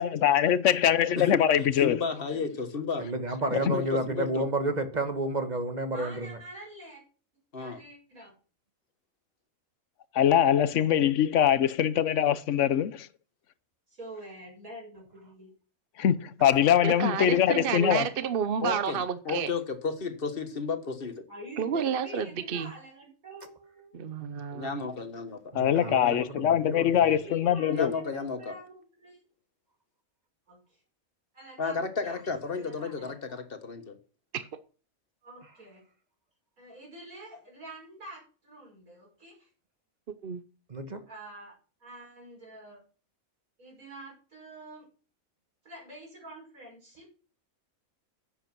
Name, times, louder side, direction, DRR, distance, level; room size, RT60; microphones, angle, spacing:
voice 1, 0.0-2.0 3.5-3.8 10.1-13.1 16.0-18.1 25.5-27.9, left 10 dB, 65° left, 1.0 m, -23 dB
voice 2, 1.8-3.1 3.6-4.5 7.5-7.8 18.6-21.2 24.5-25.4 26.0-26.2 27.7-28.5 31.6-34.0, left 5 dB, 40° left, 1.6 m, -33 dB
voice 3, 3.0-6.4 25.5-27.0 40.7-41.0, right 2 dB, 30° right, 1.4 m, -31 dB
voice 4, 5.9-7.0 7.6-8.3 13.9-15.5 21.3-23.9 27.0-29.2 30.5-30.8 31.3-33.4 35.2-35.8 36.6-39.5 41.1-41.5 41.8-42.8 43.6-44.9 45.6-47.1, right 1 dB, 80° right, 5.8 m, -47 dB
voice 5, 16.8-19.5 21.6-22.7 23.9-24.8 34.3-34.5 40.2-40.4, right 7 dB, 50° right, 0.9 m, -30 dB
10.0 x 8.1 x 6.0 m
omnidirectional pair, 1.5 m